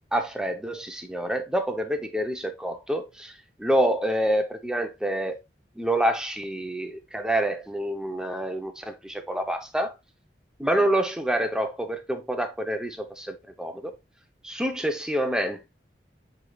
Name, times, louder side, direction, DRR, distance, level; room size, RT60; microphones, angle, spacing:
voice 1, 0.1-3.3 3.6-5.4 5.8-9.9 10.6-13.9 14.4-15.7, right 1 dB, 5° right, 0.5 m, -27 dB
7.4 x 3.2 x 2.2 m
head